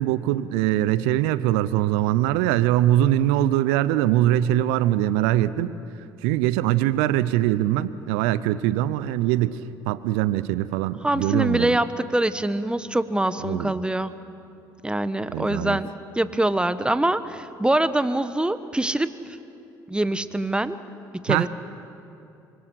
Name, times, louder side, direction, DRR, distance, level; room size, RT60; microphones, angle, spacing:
voice 1, 0.0-5.7 6.2-9.6 9.9-11.8 13.4-13.7 15.3-15.8 21.3-21.5, right 13 dB, 75° right, 16 dB, 0.6 m, -22 dB
voice 2, 11.0-14.1 14.8-15.9 16.1-19.1 19.9-20.8 21.2-21.5, right 1 dB, 10° right, 13 dB, 1.2 m, -24 dB
25.5 x 24.0 x 6.4 m, 2.8 s
hypercardioid pair, 55°, 11 cm